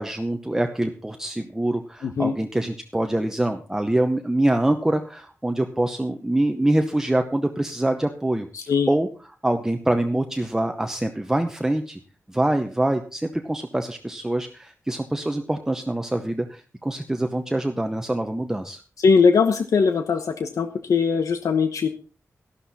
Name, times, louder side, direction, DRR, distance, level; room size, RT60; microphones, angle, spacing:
voice 1, 0.0-9.1 9.4-12.0 12.3-18.8, right 1 dB, 10° right, 5 dB, 0.8 m, -25 dB
voice 2, 2.0-2.3 8.5-8.9 19.0-21.9, left 5 dB, 90° left, 8 dB, 1.0 m, -20 dB
13.0 x 12.0 x 4.1 m, 0.37 s
wide cardioid pair, 165°, 5 cm